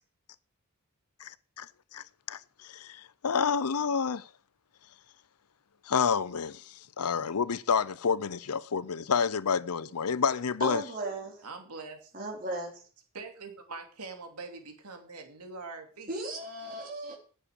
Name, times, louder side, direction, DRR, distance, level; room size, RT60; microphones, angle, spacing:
voice 1, 1.2-1.7 1.9-4.3 5.9-10.8, left 6 dB, 85° left, 0.6 m, -29 dB
voice 2, 9.8-10.1 11.4-12.0 13.1-16.1, right 3 dB, 90° right, 2.8 m, -43 dB
voice 3, 10.6-11.4 12.1-12.8 16.1-17.2, right 2 dB, 40° right, 4.2 m, -36 dB
10.0 x 7.5 x 8.3 m
head